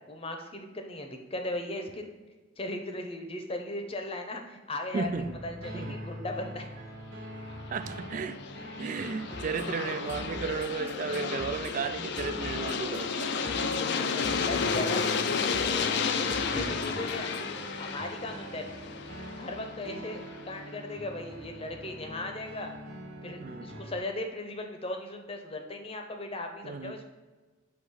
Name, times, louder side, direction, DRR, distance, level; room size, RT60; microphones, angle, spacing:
voice 1, 0.1-2.1 2.6-5.1 5.4-6.7 14.5-15.7 16.2-17.4 17.8-18.6 19.4-22.7 23.2-27.1, left 1 dB, 30° left, 4 dB, 0.8 m, -37 dB
voice 2, 4.9-5.4 5.7-6.0 7.7-8.4 8.8-13.3 16.5-16.8 23.4-23.7 26.6-27.0, right 4 dB, 40° right, 12 dB, 0.3 m, -34 dB
sound 1, 5.0-24.0, equal, 80° right, 1.5 m, -44 dB
Aircraft, 7.6-20.4, left 5 dB, 60° left, 0.4 m, -32 dB
sound 2, 9.3-17.6, equal, 10° right, 0.8 m, -43 dB
6.4 x 3.0 x 5.6 m, 1.3 s
head